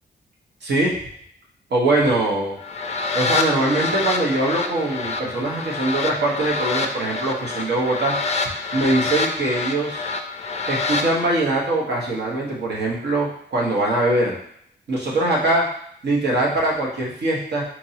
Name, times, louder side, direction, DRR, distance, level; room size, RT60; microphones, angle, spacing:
voice 1, 0.6-0.9 1.7-2.6 3.1-8.2 8.7-10.0 10.7-14.3 14.9-15.7 16.0-17.6, right 2 dB, 65° right, -3 dB, 1.1 m, -22 dB
sound 1, 2.6-11.1, left 3 dB, 35° left, 0.4 m, -27 dB
4.4 x 2.7 x 2.8 m, 0.69 s
wide cardioid pair, 125°, 19 cm